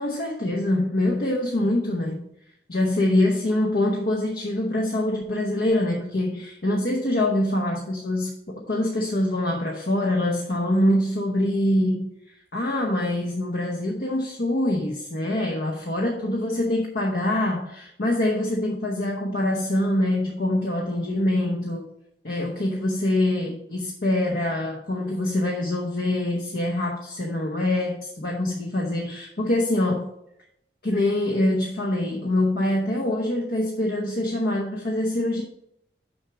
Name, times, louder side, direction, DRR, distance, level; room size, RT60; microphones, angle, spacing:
voice 1, 0.0-2.2 2.7-12.1 12.5-21.8 22.2-30.1 30.8-35.4, left 1 dB, 55° left, -1 dB, 1.0 m, -24 dB
6.4 x 6.1 x 4.6 m, 0.75 s
head